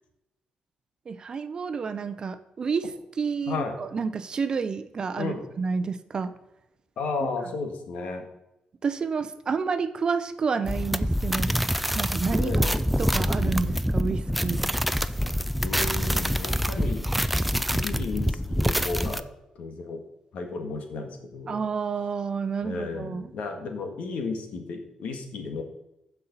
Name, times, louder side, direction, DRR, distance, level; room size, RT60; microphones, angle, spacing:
voice 1, 1.1-2.9 3.2-6.3 8.8-11.6 11.9-12.5 13.0-14.7 21.5-23.3, right 5 dB, 35° right, 11 dB, 0.6 m, -29 dB
voice 2, 3.5-3.8 5.2-5.5 7.0-8.3 12.4-12.8 15.6-17.1 17.5-19.2 19.6-20.0 20.3-21.6 22.6-25.6, left 4 dB, 75° left, 4 dB, 1.8 m, -33 dB
sound 1, 10.6-19.2, equal, ahead, 0.4 m, -26 dB
15.0 x 5.5 x 4.1 m, 0.91 s
cardioid pair, 140°, 2 cm